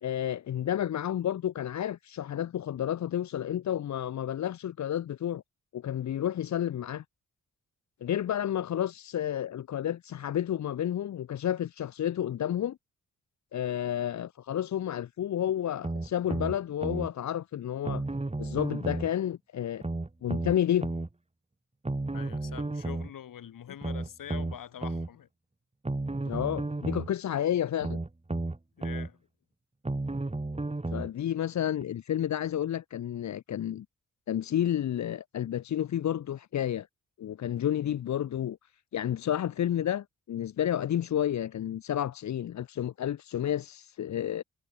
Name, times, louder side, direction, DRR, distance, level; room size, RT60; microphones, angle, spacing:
voice 1, 0.0-5.4 5.7-7.0 8.0-12.8 13.5-18.0 18.4-19.8 20.2-20.9 26.2-28.0 30.9-33.9 34.3-36.9 37.2-38.6 38.9-44.4, left 10 dB, 55° left, 0.7 m, -31 dB
sound 1, 15.8-17.1 17.8-19.1 19.8-21.1 21.8-23.1 23.8-25.1 25.8-27.1 27.8-29.1 29.8-31.1 31.8-31.9, right 2 dB, 20° right, 2.9 m, -32 dB
voice 2, 22.1-25.3 28.8-29.2, left 10 dB, 75° left, 3.7 m, -44 dB
supercardioid pair, 50°, 33 cm